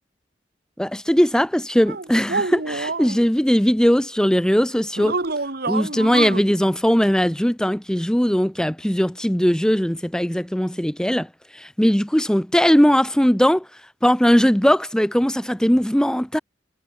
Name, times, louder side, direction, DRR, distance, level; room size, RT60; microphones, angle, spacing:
voice 1, 0.8-5.2 5.7-13.7 14.0-16.4, equal, 5° left, 0.8 m, -19 dB
sound 1, 1.9-3.2 5.0-6.4, right 3 dB, 55° right, 2.0 m, -26 dB
head